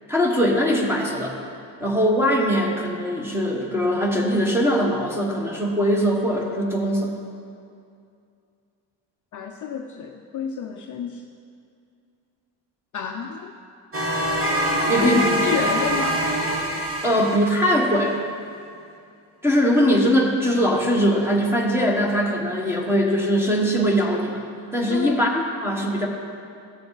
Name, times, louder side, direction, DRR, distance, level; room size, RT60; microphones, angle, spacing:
voice 1, 0.1-1.4 1.8-7.1 14.9-15.4 17.0-18.2 19.4-24.4 24.7-25.3 25.6-26.1, equal, 5° right, -1 dB, 1.2 m, -21 dB
voice 2, 9.3-11.3 12.9-13.5 14.8-16.3 24.9-25.2, left 7 dB, 40° left, 3 dB, 0.5 m, -29 dB
sound 1, 13.9-17.9, right 1 dB, 30° right, 1.5 m, -24 dB
16.0 x 6.8 x 4.0 m, 2.4 s
cardioid pair, 145°, 47 cm